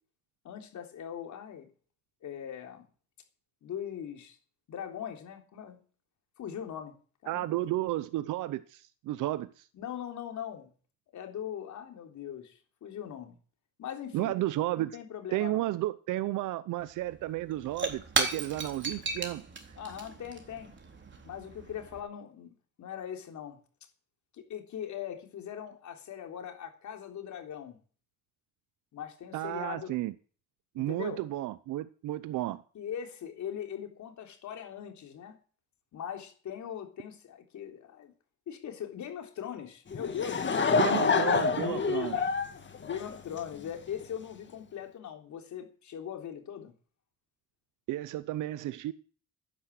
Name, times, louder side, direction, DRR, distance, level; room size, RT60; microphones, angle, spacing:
voice 1, 0.4-1.7 2.2-2.8 3.6-4.4 4.7-5.8 6.4-7.0 7.2-7.6 9.7-10.7 11.1-13.4 13.8-14.3 14.7-15.7 19.8-20.7 21.2-23.6 24.3-27.8 28.9-29.9 30.8-31.2 32.7-35.4 35.9-38.1 38.5-40.8 41.1-42.3 42.8-46.7, left 9 dB, 70° left, 3.7 m, -40 dB
voice 2, 7.3-9.7 14.1-15.0 15.3-19.8 29.3-30.1 30.7-32.6 40.7-42.2 47.9-48.9, right 15 dB, 85° right, 0.8 m, -33 dB
Shatter / Crushing, 16.8-16.9 17.1-22.0, right 4 dB, 40° right, 3.8 m, -35 dB
Laughter / Crowd, 39.9-43.7, left 5 dB, 40° left, 2.2 m, -27 dB
12.5 x 10.0 x 8.3 m
cardioid pair, 90°, 30 cm